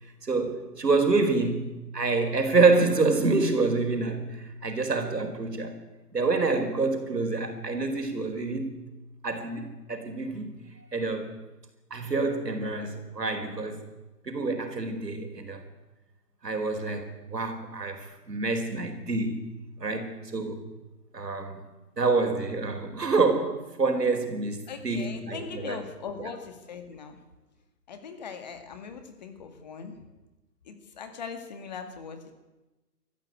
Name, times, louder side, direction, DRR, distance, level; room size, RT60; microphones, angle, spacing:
voice 1, 0.2-5.8 6.1-8.8 9.2-10.5 10.9-11.3 11.9-13.8 14.2-15.6 16.4-19.5 19.8-20.6 21.1-21.6 22.0-25.8 26.2-26.3, right 3 dB, 85° right, 4.6 m, -27 dB
voice 2, 24.7-27.2 27.9-30.0 30.6-32.3, left 6 dB, 25° left, 2.1 m, -40 dB
22.5 x 14.0 x 9.3 m
hypercardioid pair, 165°, 47 cm